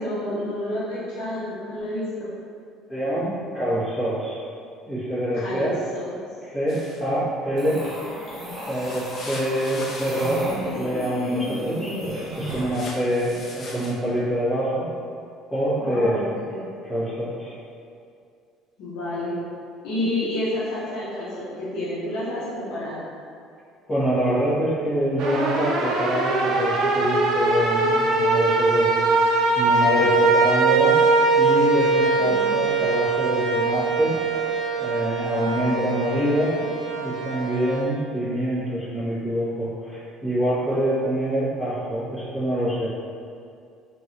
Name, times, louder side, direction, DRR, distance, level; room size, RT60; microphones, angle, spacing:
voice 1, 0.0-2.3 5.3-6.1 15.8-16.7 18.8-19.3 19.8-23.0 32.2-32.6, left 1 dB, 75° left, -8 dB, 0.7 m, -29 dB
voice 2, 2.9-4.4 4.9-5.8 6.4-7.8 8.7-11.9 12.4-14.9 15.5-16.4 16.8-17.5 23.9-31.0 31.3-34.2 34.8-36.6 37.0-42.9, equal, 20° left, -16 dB, 1.2 m, -25 dB
sound 1, 6.7-7.0 8.7-10.6 12.7-13.9, left 2 dB, 40° left, 0.4 m, -39 dB
sound 2, 7.6-12.9, equal, 30° right, 1.0 m, -33 dB
sound 3, 25.2-37.8, right 3 dB, 65° right, 0.4 m, -22 dB
3.0 x 2.5 x 2.7 m, 2.4 s
cardioid pair, 130°, 0 cm